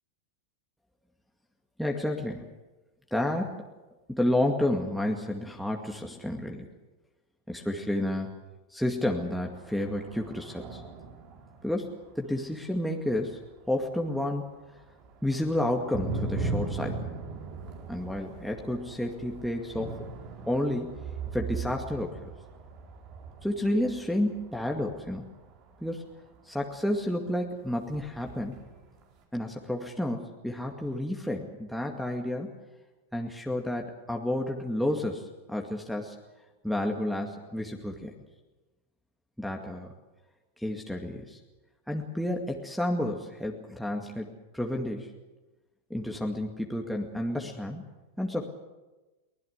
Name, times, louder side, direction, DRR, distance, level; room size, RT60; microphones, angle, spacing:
voice 1, 1.8-2.5 3.1-3.6 4.1-6.7 7.5-8.3 8.7-10.8 11.6-13.4 13.7-14.5 15.2-17.1 17.9-20.0 20.5-21.0 21.3-22.2 23.4-25.3 25.8-26.1 26.4-28.6 29.3-32.5 33.1-36.2 36.6-38.1 39.4-39.9 40.6-41.4 41.9-44.3 44.5-45.1 45.9-47.8 48.2-48.5, left 1 dB, ahead, 0 dB, 2.2 m, -30 dB
sound 1, 9.4-14.4 14.7-27.4 27.8-29.2, right 3 dB, 50° right, 4.8 m, -39 dB
23.5 x 17.0 x 8.1 m, 1.1 s
hypercardioid pair, 105°, 0 cm